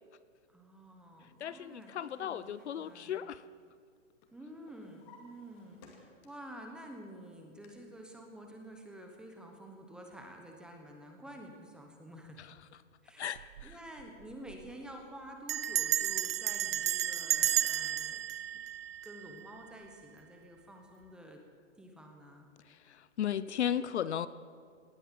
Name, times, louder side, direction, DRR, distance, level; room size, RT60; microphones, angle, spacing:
voice 1, 0.5-2.5 2.7-3.3 4.3-12.4 13.0-18.2 18.5-18.6 19.0-21.4 21.7-22.5, right 1 dB, ahead, 2 dB, 0.9 m, -50 dB
voice 2, 1.4-3.5 12.4-12.5 13.2-13.8 22.6-24.3, left 10 dB, 60° left, 15 dB, 0.7 m, -36 dB
Drawer open or close, 1.6-3.9 4.2-6.6 7.0-7.7, left 4 dB, 30° left, 2.4 m, -61 dB
Bell, 13.4-13.7 14.0-14.1 14.3-14.7 15.5-19.6, right 11 dB, 50° right, 0.4 m, -32 dB
18.0 x 10.0 x 7.6 m, 2.1 s
hypercardioid pair, 155°, 38 cm